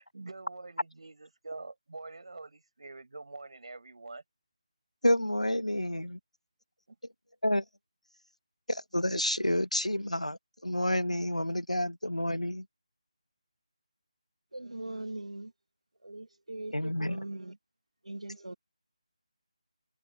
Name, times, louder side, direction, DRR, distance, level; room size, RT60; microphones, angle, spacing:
voice 1, 0.0-4.2 6.9-7.0, right 3 dB, 55° right, 5.8 m, -45 dB
voice 2, 5.0-6.2 7.4-7.6 8.7-12.6 16.7-17.2, left 1 dB, 85° left, 1.0 m, -29 dB
voice 3, 14.5-15.5 16.0-17.6 18.1-18.5, right 2 dB, 75° right, 1.2 m, -40 dB
figure-of-eight pair, 155°, 4 cm